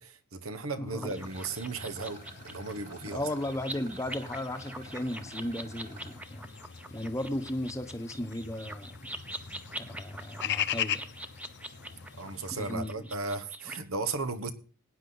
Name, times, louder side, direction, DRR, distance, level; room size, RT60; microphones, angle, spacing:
voice 1, 0.0-3.3 12.2-14.5, right 3 dB, 75° right, 1.3 m, -36 dB
voice 2, 0.8-1.2 3.0-6.5 6.9-9.0 9.8-11.0 12.5-13.1, left 1 dB, 15° left, 1.0 m, -35 dB
sound 1, 1.0-13.8, right 1 dB, 5° right, 0.8 m, -44 dB
sound 2, 1.1-12.7, left 9 dB, 55° left, 0.8 m, -40 dB
Rattle, 1.2-6.2, right 4 dB, 40° right, 5.4 m, -52 dB
18.0 x 9.6 x 4.0 m
head